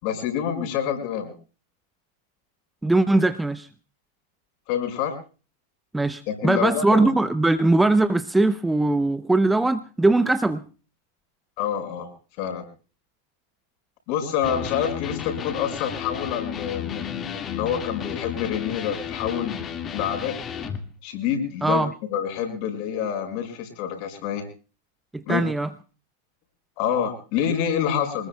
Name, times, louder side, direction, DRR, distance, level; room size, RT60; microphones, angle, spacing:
voice 1, 0.0-1.3 4.7-5.2 6.3-7.1 11.6-12.1 12.4-12.7 14.1-19.6 19.9-20.4 21.0-21.8 22.1-24.4 25.3-25.4 26.8-28.3, left 8 dB, 45° left, 6 dB, 5.6 m, -27 dB
voice 2, 2.8-3.7 5.9-10.6 21.6-21.9 25.1-25.7, right 2 dB, 5° right, 13 dB, 0.7 m, -21 dB
Electric guitar, 14.4-20.8, left 8 dB, 25° left, 2.0 m, -33 dB
25.5 x 20.0 x 2.3 m, 0.36 s
figure-of-eight pair, 90°, 0 cm